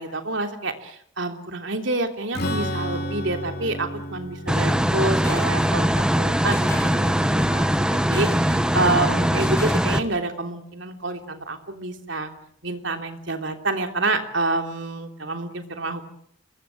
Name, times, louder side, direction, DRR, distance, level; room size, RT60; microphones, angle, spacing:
voice 1, 0.0-12.3 12.6-16.1, right 2 dB, 60° right, 6 dB, 3.2 m, -28 dB
Strum, 2.3-8.0, equal, 50° left, 4.3 m, -33 dB
sound 1, 4.5-10.1, left 1 dB, 10° left, 7.4 m, -37 dB
sound 2, 4.5-10.0, equal, 5° right, 0.9 m, -21 dB
26.5 x 22.0 x 7.7 m, 0.67 s
head